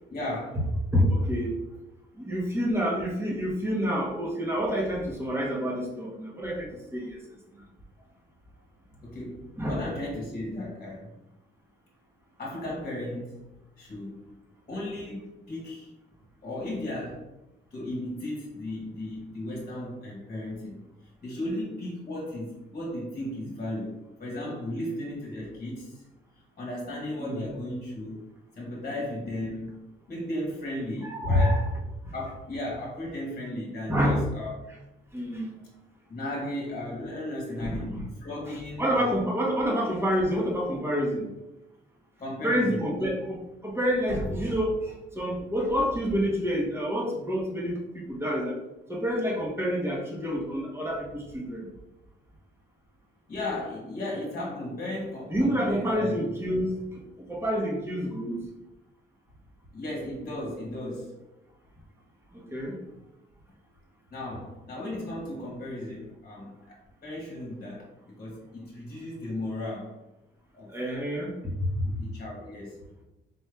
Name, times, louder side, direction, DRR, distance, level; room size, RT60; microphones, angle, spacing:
voice 1, 0.1-0.6 9.0-11.1 12.4-13.4 13.8-14.2 14.7-15.9 16.4-17.2 17.7-20.8 21.2-26.0 26.6-31.7 32.1-34.5 36.1-39.3 39.7-39.8 42.2-43.1 53.3-56.3 59.7-61.2 64.1-70.0 70.5-70.7 72.0-73.0, left 1 dB, 40° left, -3 dB, 1.4 m, -35 dB
voice 2, 0.9-1.6 2.1-7.2 7.5-7.6 9.6-9.8 27.2-27.5 31.0-31.6 32.0-32.1 33.9-34.3 35.1-35.5 37.6-38.0 38.5-41.3 42.4-43.4 43.6-48.6 48.9-51.7 55.3-58.4 62.3-62.8 70.7-71.9, equal, 10° right, -2 dB, 1.3 m, -28 dB
4.3 x 2.7 x 3.5 m, 0.94 s
cardioid pair, 90°, 20 cm